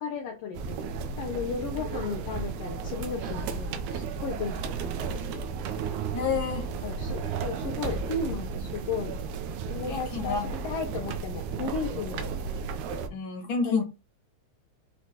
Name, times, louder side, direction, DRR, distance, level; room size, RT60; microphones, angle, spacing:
voice 1, 0.0-5.5 6.8-9.2 9.7-12.2 13.6-13.8, left 5 dB, 80° left, 1.4 m, -35 dB
sound 1, 0.5-13.1, right 5 dB, 80° right, 2.1 m, -34 dB
voice 2, 6.1-6.7 9.9-10.5 13.1-13.8, left 5 dB, 55° left, 1.5 m, -29 dB
6.2 x 3.0 x 2.8 m
omnidirectional pair, 3.5 m